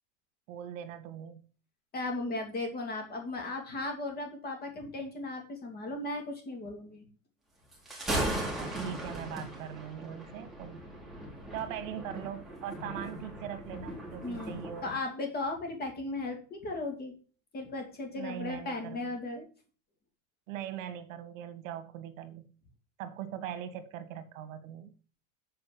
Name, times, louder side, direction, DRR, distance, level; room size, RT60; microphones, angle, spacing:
voice 1, 0.5-1.4 8.4-10.9 11.5-14.9 18.2-19.0 20.5-22.5 23.0-24.9, right 10 dB, 85° right, 1.7 m, -41 dB
voice 2, 1.9-7.1 14.2-17.1 17.5-19.5, left 2 dB, 25° left, 2.6 m, -36 dB
Thunder, 7.7-15.0, right 1 dB, ahead, 2.6 m, -38 dB
7.8 x 4.9 x 6.9 m
supercardioid pair, 165°, 38 cm